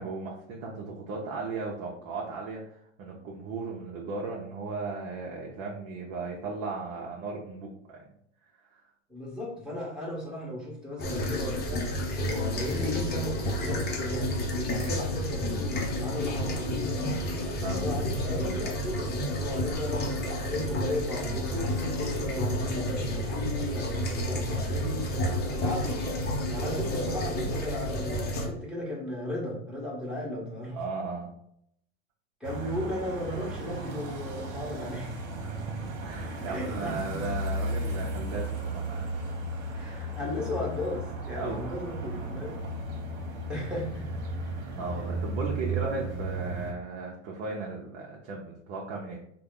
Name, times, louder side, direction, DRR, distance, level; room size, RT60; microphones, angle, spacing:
voice 1, 0.0-8.0 8.7-8.8 17.4-18.8 30.7-31.3 35.4-35.5 35.8-39.1 41.3-41.7 44.5-49.2, right 3 dB, 45° right, -2 dB, 0.8 m, -36 dB
voice 2, 9.1-11.9 12.2-17.1 17.5-25.1 25.5-26.0 26.5-30.8 32.4-35.2 36.5-37.0 39.7-42.6 43.5-44.1, left 1 dB, ahead, -5 dB, 1.3 m, -35 dB
sound 1, 11.0-28.5, left 1 dB, 25° left, 0.8 m, -30 dB
sound 2, 32.4-46.7, right 1 dB, 65° right, 1.1 m, -35 dB
3.6 x 2.2 x 3.7 m, 0.71 s
hypercardioid pair, 125°, 38 cm